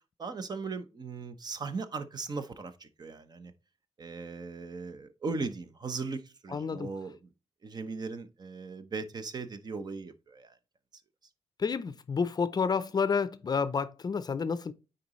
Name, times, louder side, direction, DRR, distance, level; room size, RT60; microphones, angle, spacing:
voice 1, 0.2-3.5 4.0-7.2 7.6-10.6, right 4 dB, 35° right, 0.9 m, -38 dB
voice 2, 6.5-6.9 11.6-14.7, left 5 dB, 35° left, 0.6 m, -30 dB
9.3 x 4.0 x 3.1 m
cardioid pair, 90°, 11 cm